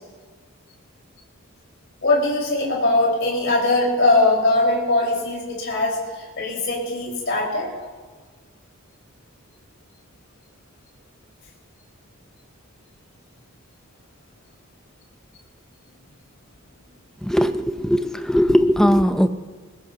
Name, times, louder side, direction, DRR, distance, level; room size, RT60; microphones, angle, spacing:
voice 1, 2.0-7.7, left 2 dB, 55° left, -3 dB, 4.8 m, -21 dB
voice 2, 17.2-19.3, equal, ahead, 8 dB, 0.5 m, -18 dB
21.5 x 20.0 x 2.9 m, 1.5 s
head